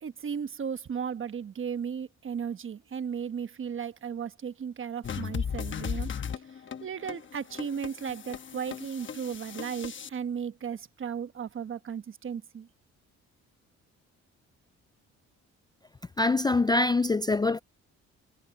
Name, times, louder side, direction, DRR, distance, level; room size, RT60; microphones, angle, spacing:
voice 1, 0.0-6.1 6.8-12.7, right 7 dB, 40° right, 1.2 m, -35 dB
sound 1, 5.0-10.1, left 7 dB, 40° left, 1.1 m, -37 dB
voice 2, 16.2-17.6, left 3 dB, 15° left, 0.4 m, -24 dB
cardioid pair, 90°, 30 cm